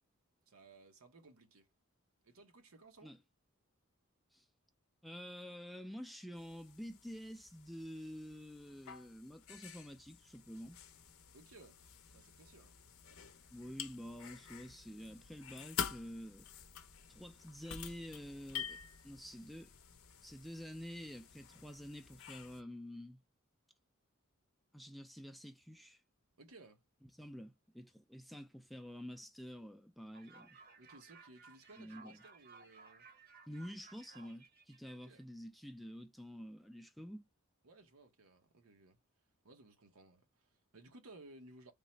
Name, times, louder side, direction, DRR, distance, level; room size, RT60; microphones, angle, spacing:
voice 1, 0.5-1.7 2.2-3.1 11.3-12.8 26.4-26.8 30.8-33.1 34.9-35.2 37.6-39.0 39.4-41.7, right 2 dB, 85° right, 0.9 m, -59 dB
voice 2, 5.0-10.8 13.5-16.5 17.1-18.8 19.0-19.7 20.2-23.2 24.7-26.0 27.2-30.5 31.8-32.2 33.5-37.3, equal, ahead, 0.4 m, -49 dB
sound 1, 6.3-22.6, left 8 dB, 85° left, 0.7 m, -49 dB
sound 2, 30.1-35.2, right 4 dB, 45° right, 0.9 m, -59 dB
3.6 x 2.1 x 4.1 m
head